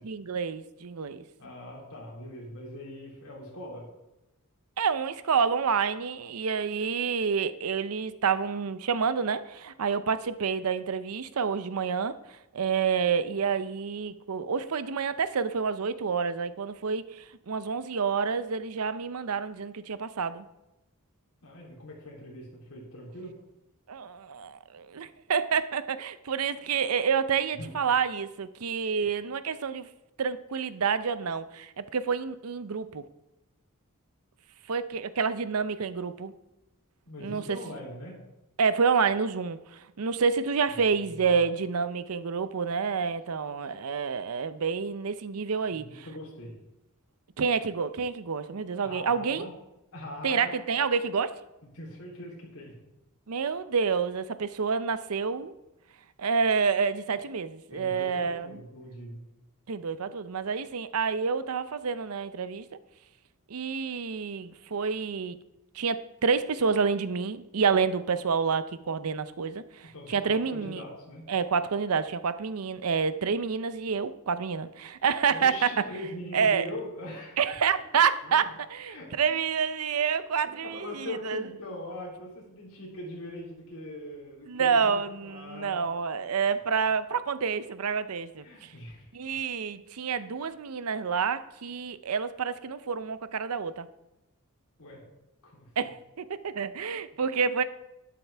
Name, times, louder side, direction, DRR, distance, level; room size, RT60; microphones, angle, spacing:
voice 1, 0.0-1.2 4.8-12.1 12.5-20.4 23.9-29.9 30.2-33.0 34.7-36.3 37.2-37.6 38.6-46.1 47.4-49.5 50.2-51.4 53.3-55.5 56.2-58.6 59.7-62.7 63.5-65.4 65.7-70.8 71.3-75.9 76.3-76.7 77.4-81.4 84.5-88.7 89.1-93.9 95.8-97.6, right 6 dB, 90° right, 0.6 m, -28 dB
voice 2, 1.4-3.9 21.4-23.3 27.5-27.7 37.1-38.2 41.0-41.4 45.7-46.6 48.8-49.5 49.9-50.5 51.7-52.7 57.7-59.2 69.9-71.2 75.3-77.5 78.2-78.5 78.9-79.1 80.4-85.8 88.4-89.1 94.8-95.0 95.4-95.9, left 1 dB, 80° left, 3.3 m, -41 dB
11.5 x 9.3 x 3.4 m
head